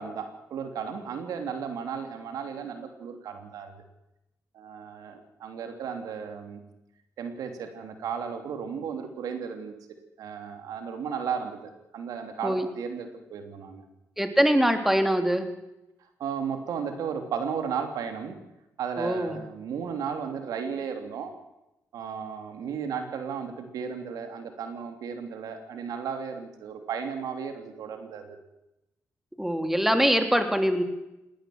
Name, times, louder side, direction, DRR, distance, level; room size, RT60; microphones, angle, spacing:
voice 1, 0.0-3.7 4.5-6.6 7.2-9.7 10.2-13.8 16.2-18.4 18.8-21.3 21.9-28.4, right 6 dB, 85° right, 6 dB, 3.2 m, -34 dB
voice 2, 14.2-15.4 19.0-19.3 29.4-30.8, equal, 5° right, 7 dB, 3.4 m, -23 dB
19.0 x 19.0 x 7.9 m, 0.91 s
cardioid pair, 70°, 6 cm